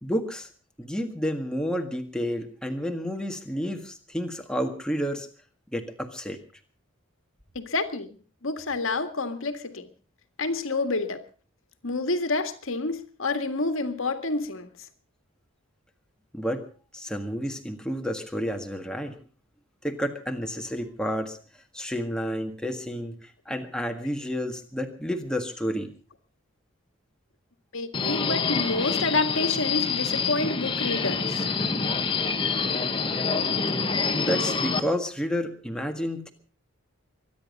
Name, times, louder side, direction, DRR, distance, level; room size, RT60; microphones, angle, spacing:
voice 1, 0.0-0.5 0.8-5.3 5.7-6.4 16.3-16.7 16.9-19.2 19.8-21.4 21.7-25.9 33.7-36.3, equal, 5° left, 1.7 m, -30 dB
voice 2, 7.6-8.2 8.4-9.9 10.4-11.2 11.8-14.7 27.7-31.5, left 3 dB, 70° left, 1.8 m, -28 dB
Subway metro underground, 27.9-34.8, left 5 dB, 25° left, 1.3 m, -26 dB
23.5 x 10.5 x 5.3 m
head